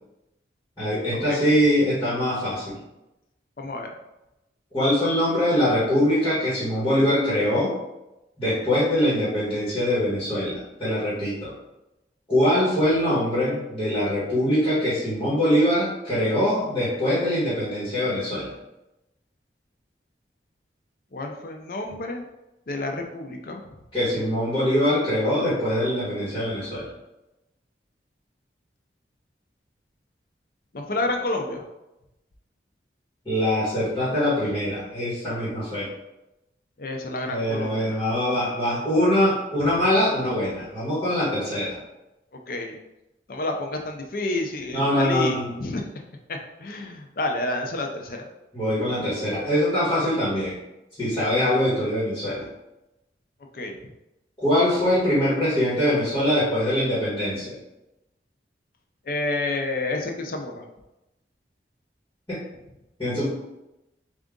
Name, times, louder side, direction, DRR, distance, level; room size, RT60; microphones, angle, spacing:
voice 1, 0.8-2.8 4.7-7.8 8.4-11.5 12.3-18.5 23.9-26.9 33.2-35.9 37.2-41.8 44.7-45.5 48.5-50.6 51.0-52.5 54.4-57.6 62.3-62.4 63.0-63.3, equal, 20° left, -10 dB, 1.4 m, -23 dB
voice 2, 3.6-3.9 21.1-22.3 22.7-23.6 30.7-31.6 36.8-38.0 42.5-42.8 43.3-45.8 46.3-48.3 53.5-53.8 59.0-60.6, left 2 dB, 50° left, 3 dB, 0.5 m, -29 dB
3.6 x 2.5 x 3.6 m, 0.95 s
head